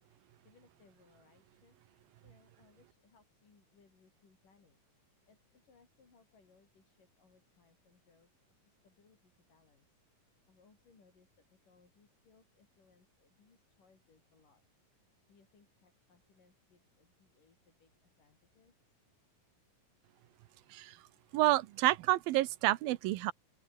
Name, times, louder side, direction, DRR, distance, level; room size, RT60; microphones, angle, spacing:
voice 1, 0.4-1.8 2.2-9.9 10.1-14.6 15.3-18.7, left 5 dB, 65° left, 6.8 m, -68 dB
voice 2, 21.3-23.3, right 16 dB, 90° right, 2.7 m, -29 dB
open air
omnidirectional pair, 4.0 m